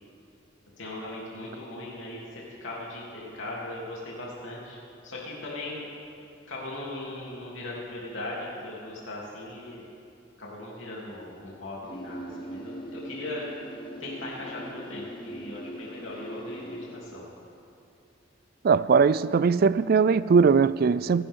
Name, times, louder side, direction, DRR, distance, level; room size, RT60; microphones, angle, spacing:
voice 1, 0.8-4.8 5.0-5.9 6.5-9.8 10.4-13.4 14.0-17.3, left 2 dB, 80° left, 3.1 m, -38 dB
sound 1, 11.8-17.0, equal, 25° left, 1.5 m, -40 dB
voice 2, 18.6-21.2, right 5 dB, 50° right, 0.3 m, -20 dB
27.5 x 12.0 x 3.7 m
head